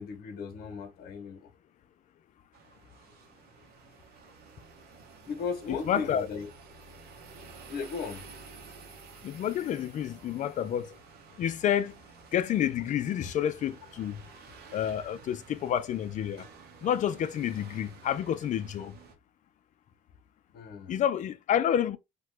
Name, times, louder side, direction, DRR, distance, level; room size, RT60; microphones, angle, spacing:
voice 1, 0.0-1.5 5.3-6.5 7.7-8.3 20.5-21.0, left 5 dB, 65° left, 0.8 m, -36 dB
sound 1, 2.5-19.1, right 4 dB, 70° right, 0.8 m, -51 dB
voice 2, 5.7-6.3 9.2-10.9 11.4-11.9 12.3-14.2 14.7-16.4 16.8-19.0 20.9-22.0, left 10 dB, 50° left, 0.4 m, -29 dB
2.9 x 2.1 x 3.2 m
cardioid pair, 110°, 17 cm